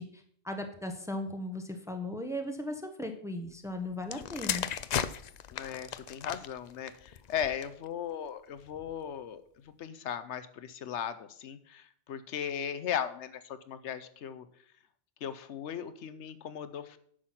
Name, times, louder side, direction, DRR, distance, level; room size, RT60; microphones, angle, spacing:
voice 1, 0.0-4.7, left 1 dB, 5° right, 5 dB, 0.9 m, -37 dB
sound 1, 4.0-7.9 8.7-8.9, left 8 dB, 55° left, 0.5 m, -36 dB
voice 2, 5.5-9.4 9.8-14.5 15.2-17.0, left 8 dB, 85° left, 12 dB, 1.0 m, -37 dB
9.6 x 6.0 x 5.8 m, 0.64 s
omnidirectional pair, 1.1 m